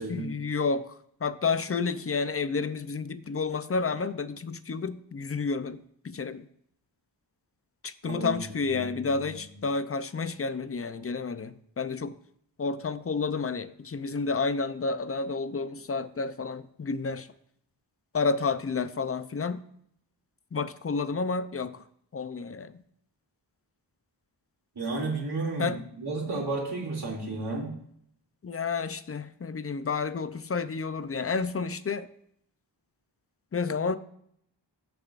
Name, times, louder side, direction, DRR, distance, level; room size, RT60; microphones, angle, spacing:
voice 1, 0.1-5.8 6.0-6.5 7.8-12.2 12.6-17.3 18.1-19.6 20.5-21.8 22.1-22.8 25.6-25.8 28.4-32.1 33.5-34.0, left 4 dB, 30° left, 13 dB, 0.6 m, -30 dB
voice 2, 8.7-9.3 24.8-27.7, right 3 dB, 60° right, -5 dB, 2.7 m, -32 dB
15.5 x 6.9 x 2.5 m, 0.69 s
wide cardioid pair, 90°, 45 cm